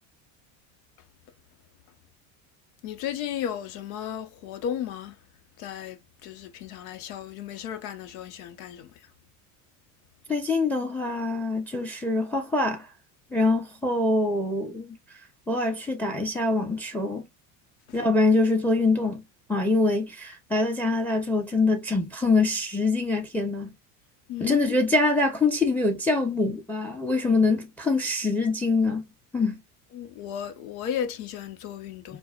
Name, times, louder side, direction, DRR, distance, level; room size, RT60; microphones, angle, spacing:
voice 1, 2.8-5.1 5.6-8.9 24.3-24.8 29.9-32.2, left 9 dB, 80° left, 1.0 m, -34 dB
voice 2, 10.3-12.9 13.3-15.0 15.5-17.2 17.9-19.2 19.5-23.7 24.4-29.1 29.3-29.6, left 3 dB, 5° left, 0.8 m, -24 dB
4.6 x 2.2 x 2.4 m
supercardioid pair, 110°, 42 cm